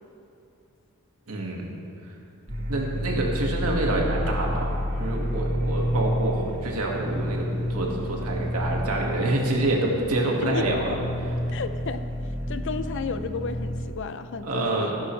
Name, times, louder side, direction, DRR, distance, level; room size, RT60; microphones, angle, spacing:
voice 1, 1.3-1.7 2.7-10.9 12.4-12.5 14.4-15.0, right 2 dB, 85° right, -1 dB, 2.0 m, -27 dB
sound 1, 2.5-13.8, equal, 55° right, 2.3 m, -29 dB
voice 2, 10.4-11.0 11.5-12.1 12.5-14.9, left 5 dB, 55° left, 11 dB, 0.5 m, -33 dB
15.0 x 11.5 x 3.3 m, 2.7 s
head